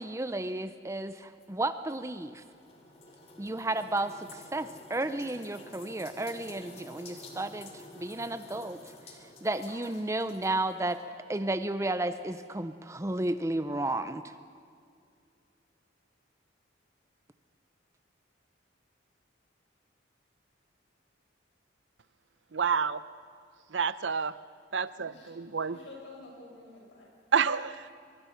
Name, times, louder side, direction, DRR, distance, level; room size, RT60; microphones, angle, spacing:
voice 1, 0.0-2.4 3.4-8.8 9.4-11.0 11.3-14.3, right 2 dB, 15° right, 11 dB, 0.5 m, -33 dB
sound 1, 1.4-11.0, left 2 dB, 30° left, 2.4 m, -50 dB
voice 2, 22.5-23.0 23.7-24.3 24.7-25.8 27.3-27.9, right 6 dB, 75° right, 15 dB, 0.7 m, -29 dB
voice 3, 24.9-27.2, left 2 dB, 70° left, -2 dB, 7.7 m, -50 dB
24.0 x 23.0 x 5.7 m, 2.2 s
head